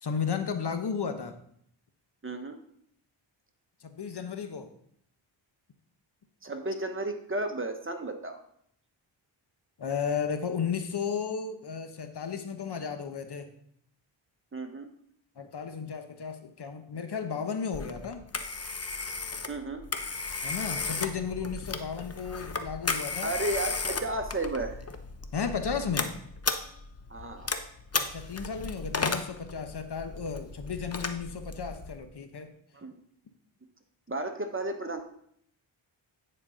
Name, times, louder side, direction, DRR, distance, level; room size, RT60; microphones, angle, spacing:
voice 1, 0.0-1.3 3.8-4.7 9.8-13.5 15.4-18.2 20.4-23.3 25.3-26.1 28.0-32.5, left 6 dB, 50° left, 8 dB, 1.1 m, -34 dB
voice 2, 2.2-2.6 6.4-8.4 14.5-14.9 19.5-19.8 23.2-24.8 27.1-27.5 32.7-32.9 34.1-35.0, right 2 dB, 25° right, 6 dB, 1.2 m, -33 dB
Telephone, 17.7-32.0, left 4 dB, 30° left, 0.9 m, -35 dB
9.8 x 4.5 x 5.0 m, 0.67 s
cardioid pair, 50°, 50 cm